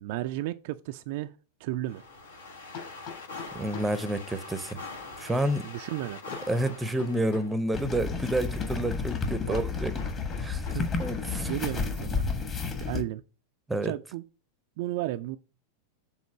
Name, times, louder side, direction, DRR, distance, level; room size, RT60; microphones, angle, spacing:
voice 1, 0.0-1.3 1.6-2.0 5.6-6.2 9.5-9.6 10.7-10.9 11.5-12.3 12.8-13.2 13.8-14.2 14.8-15.4, right 15 dB, 50° right, 0.4 m, -33 dB
Hammer, 1.1-1.2 2.7-4.0 6.3-7.6 10.0-11.3, left 6 dB, 50° left, 3.8 m, -44 dB
sound 1, 1.8-7.5, left 3 dB, 70° left, 1.3 m, -43 dB
voice 2, 3.5-4.8 5.2-5.7 6.5-10.0 10.4-10.6 11.0-11.5 13.7-13.9, right 1 dB, 10° right, 0.7 m, -29 dB
sound 2, 7.7-13.0, left 4 dB, 25° left, 1.4 m, -31 dB
7.2 x 3.7 x 6.0 m
figure-of-eight pair, 90°, 0 cm